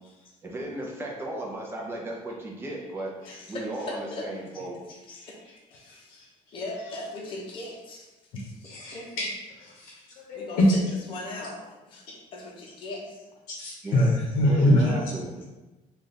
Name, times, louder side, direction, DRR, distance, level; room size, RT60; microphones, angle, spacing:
voice 1, 0.4-3.1 3.5-4.8 13.8-14.1 14.5-15.3, right 1 dB, 15° right, -2 dB, 0.6 m, -35 dB
voice 2, 3.2-4.5 4.9-5.4 5.7-6.2 6.5-9.1 10.3-10.8 11.1-11.6 11.9-12.0 12.3-13.3 14.6-15.1 15.4-15.5, left 2 dB, 35° left, -2 dB, 0.7 m, -39 dB
voice 3, 5.8-6.3 8.6-9.3 9.6-10.7 13.5-14.9, left 1 dB, 70° left, -2 dB, 0.8 m, -25 dB
3.3 x 2.4 x 4.1 m, 1.1 s
cardioid pair, 175°, 15 cm